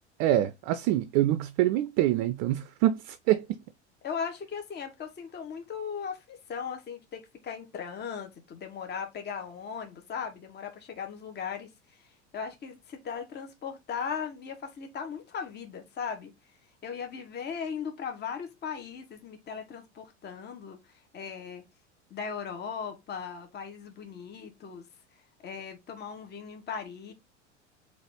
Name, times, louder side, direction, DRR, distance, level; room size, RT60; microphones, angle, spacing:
voice 1, 0.2-3.5, right 13 dB, 45° right, 0.4 m, -25 dB
voice 2, 4.0-11.7 12.3-16.3 16.8-20.8 21.1-21.6 22.1-24.9 25.4-27.1, left 6 dB, 30° left, 1.0 m, -38 dB
4.0 x 2.6 x 3.5 m
hypercardioid pair, 80°, 35 cm